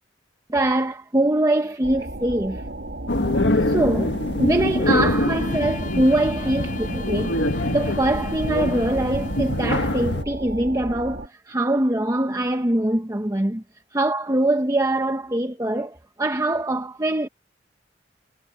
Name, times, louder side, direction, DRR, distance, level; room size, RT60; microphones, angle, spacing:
voice 1, 0.5-2.6 3.2-7.4 7.7-13.6 13.9-17.3, right 1 dB, 20° right, 0.9 m, -23 dB
sound 1, 1.8-11.3, right 1 dB, 75° right, 2.6 m, -34 dB
sound 2, 3.1-10.2, left 1 dB, 70° left, 1.6 m, -24 dB
Bowed string instrument, 4.9-9.8, left 5 dB, 50° left, 5.2 m, -42 dB
head